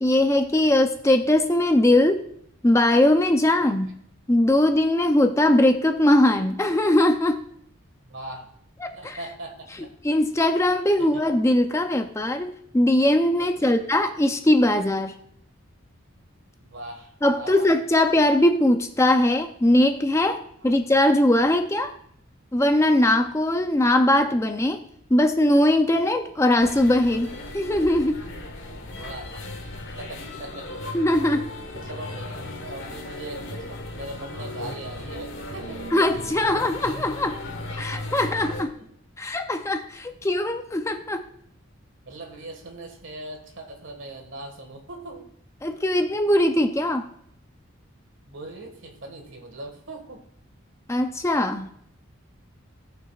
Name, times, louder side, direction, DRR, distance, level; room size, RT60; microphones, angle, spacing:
voice 1, 0.0-2.3 2.6-3.9 4.3-7.4 8.8-9.2 10.0-15.1 17.2-21.9 22.5-24.8 25.1-27.3 27.5-28.3 30.9-31.5 35.9-37.4 37.8-38.7 39.2-41.3 45.6-47.1 50.9-51.7, left 1 dB, 15° left, 7 dB, 0.4 m, -20 dB
voice 2, 8.0-8.5 8.9-9.9 11.0-11.2 13.4-13.9 16.6-17.7 20.6-20.8 28.9-29.5 30.0-30.7 31.8-36.0 36.3-36.7 38.7-38.9 42.1-45.3 48.3-50.3, right 2 dB, 65° right, 4 dB, 1.6 m, -40 dB
sound 1, 26.6-38.6, left 1 dB, 65° left, 1.3 m, -36 dB
17.5 x 6.0 x 2.4 m, 0.70 s
head